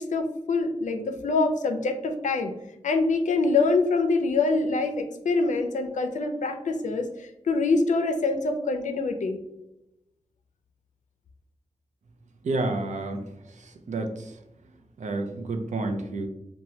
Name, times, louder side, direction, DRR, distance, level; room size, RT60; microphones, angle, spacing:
voice 1, 0.0-2.5 2.8-9.4, left 3 dB, 85° left, 6 dB, 0.4 m, -25 dB
voice 2, 12.4-13.2 13.9-14.3 15.0-16.3, right 2 dB, 80° right, 4 dB, 0.5 m, -29 dB
3.1 x 2.2 x 2.7 m, 0.87 s
wide cardioid pair, 100°, 12 cm